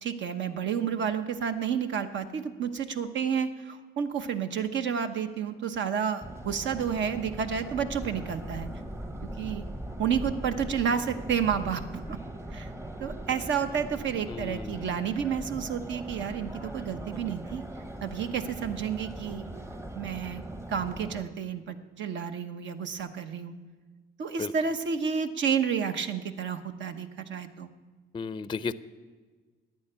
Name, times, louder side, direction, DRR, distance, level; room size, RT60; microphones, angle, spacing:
voice 1, 0.0-8.7 9.4-9.6 10.0-12.2 12.5-12.7 13.0-17.6 18.0-19.5 19.9-20.4 20.7-23.6 24.2-27.7, right 7 dB, 70° right, 8 dB, 1.0 m, -30 dB
Subway metro underground, 6.2-21.2, right 1 dB, 15° right, 0.9 m, -40 dB
voice 2, 14.3-14.8 24.4-24.5 28.1-28.7, left 5 dB, 25° left, 15 dB, 0.4 m, -34 dB
11.0 x 9.6 x 8.9 m, 1.4 s
cardioid pair, 90°, 20 cm